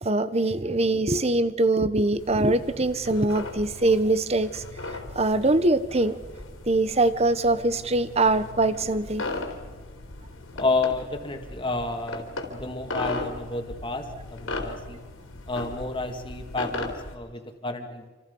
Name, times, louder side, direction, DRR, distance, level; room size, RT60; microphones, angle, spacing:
voice 1, 0.0-4.6 4.9-6.2 6.7-9.2, right 2 dB, 30° right, 13 dB, 1.0 m, -23 dB
sound 1, 2.2-17.2, left 2 dB, 80° left, 3.7 m, -37 dB
voice 2, 10.6-15.0 15.5-18.1, left 3 dB, 25° left, 5 dB, 2.2 m, -30 dB
28.5 x 26.5 x 5.4 m, 1.3 s
head